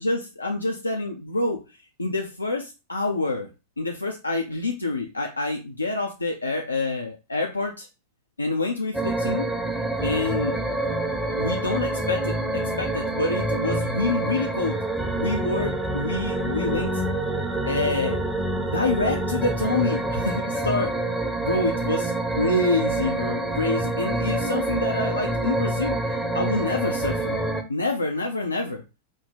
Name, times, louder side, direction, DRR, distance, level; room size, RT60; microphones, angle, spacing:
voice 1, 0.0-3.5 3.8-7.9 8.4-9.5 10.0-10.6 11.4-14.8 15.2-17.0 17.7-18.2 18.7-20.9 21.4-26.0 26.3-27.4 27.7-28.8, left 2 dB, 80° left, 2 dB, 0.5 m, -27 dB
sound 1, 8.9-27.6, right 2 dB, 5° right, 0.8 m, -27 dB
4.6 x 2.1 x 4.0 m, 0.28 s
figure-of-eight pair, 90°, 0 cm